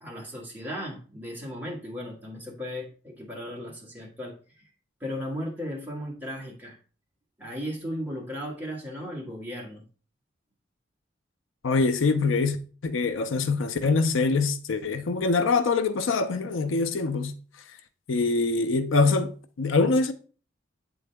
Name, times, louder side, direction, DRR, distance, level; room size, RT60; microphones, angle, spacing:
voice 1, 0.0-4.6 5.0-6.8 7.4-9.8, equal, 10° right, 1.6 m, -36 dB
voice 2, 11.6-12.6 12.8-17.3 18.1-20.1, left 3 dB, 85° left, 0.6 m, -24 dB
8.2 x 3.9 x 3.4 m
head